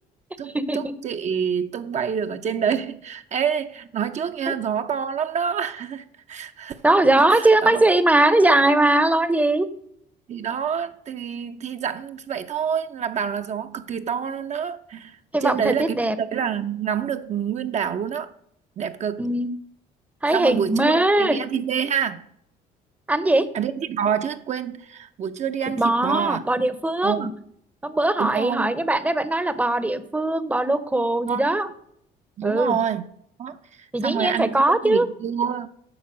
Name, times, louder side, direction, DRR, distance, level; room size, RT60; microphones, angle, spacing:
voice 1, 0.4-6.8 7.3-7.8 10.3-18.3 18.8-19.3 20.3-22.2 23.5-26.4 27.0-27.3 28.2-28.7 31.3-31.6 32.4-33.0 33.4-33.6 34.0-35.7, right 7 dB, 45° right, 0.6 m, -27 dB
voice 2, 6.8-9.7 15.3-16.2 19.2-19.5 20.2-21.4 23.1-23.4 25.8-27.3 27.8-31.7 32.4-32.8 33.9-35.1, right 2 dB, 10° right, 0.7 m, -20 dB
8.7 x 5.7 x 6.2 m
cardioid pair, 110°, 17 cm